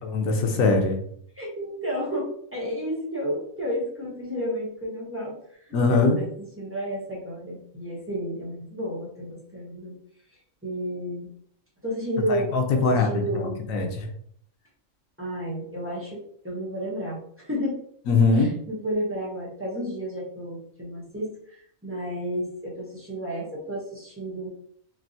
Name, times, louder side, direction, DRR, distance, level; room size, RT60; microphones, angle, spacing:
voice 1, 0.0-1.0 5.7-6.2 12.3-14.1 18.1-18.5, left 3 dB, 90° left, 3 dB, 1.1 m, -22 dB
voice 2, 1.4-5.4 5.9-6.3 6.6-10.0 10.6-11.3 11.8-13.6 15.2-16.2 16.4-17.8 18.4-21.3 21.8-24.5, equal, 10° right, -5 dB, 0.7 m, -31 dB
3.3 x 2.6 x 2.7 m, 0.64 s
omnidirectional pair, 1.4 m